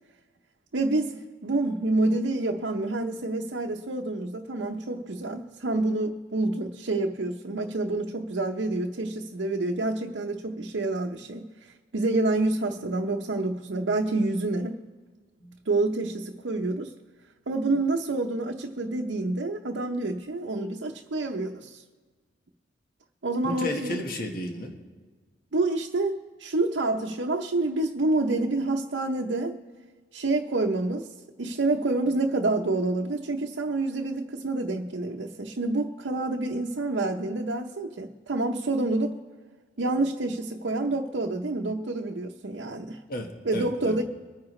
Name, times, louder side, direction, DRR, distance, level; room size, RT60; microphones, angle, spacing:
voice 1, 0.7-11.5 11.9-14.8 15.7-16.9 17.5-21.8 23.2-24.0 25.5-29.6 30.1-31.1 31.4-39.2 39.8-43.0 43.5-44.0, right 2 dB, 75° right, 0.7 m, -28 dB
voice 2, 23.4-24.7 43.1-44.0, left 1 dB, 50° left, 1.4 m, -33 dB
23.0 x 9.7 x 3.2 m
head